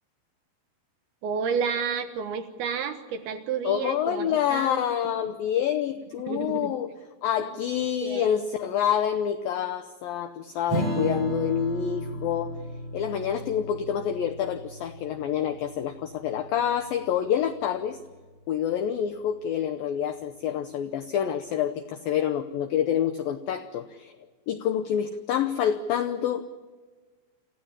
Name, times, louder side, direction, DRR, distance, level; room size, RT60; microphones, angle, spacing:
voice 1, 1.2-4.8 6.2-6.7 7.4-7.5 7.9-8.4, right 6 dB, 70° right, 7 dB, 2.7 m, -31 dB
voice 2, 3.6-6.9 7.2-12.5 12.9-18.0 18.5-24.1 24.5-26.6, left 9 dB, 85° left, 8 dB, 2.0 m, -27 dB
Strum, 10.7-17.6, right 1 dB, 35° right, 8.2 m, -34 dB
27.0 x 15.5 x 9.8 m, 1.4 s
omnidirectional pair, 5.2 m